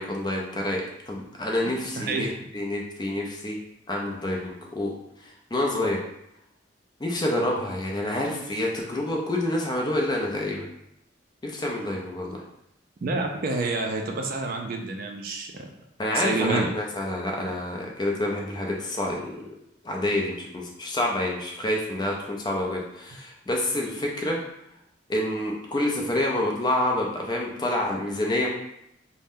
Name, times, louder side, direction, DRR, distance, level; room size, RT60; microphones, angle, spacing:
voice 1, 0.0-2.3 2.5-3.6 3.9-4.9 5.2-6.0 7.0-10.7 11.4-12.4 16.0-19.5 19.8-24.4 25.1-28.5, left 1 dB, 25° left, -1 dB, 0.4 m, -28 dB
voice 2, 2.0-2.3 13.0-15.7 16.1-16.7, right 3 dB, 50° right, 3 dB, 0.3 m, -28 dB
2.6 x 2.1 x 3.5 m, 0.80 s
head